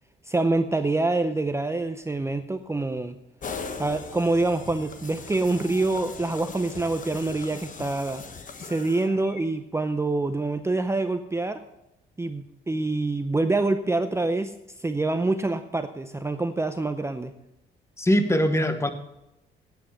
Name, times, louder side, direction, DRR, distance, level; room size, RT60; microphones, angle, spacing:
voice 1, 0.3-3.2 3.8-8.2 8.6-11.6 12.2-14.5 14.8-17.3, right 2 dB, 15° right, 8 dB, 0.6 m, -26 dB
sound 1, 3.4-9.4, left 4 dB, 40° left, 1.1 m, -39 dB
voice 2, 18.0-18.9, equal, 15° left, 9 dB, 1.2 m, -22 dB
9.9 x 8.1 x 6.7 m, 0.89 s
cardioid pair, 90°, 20 cm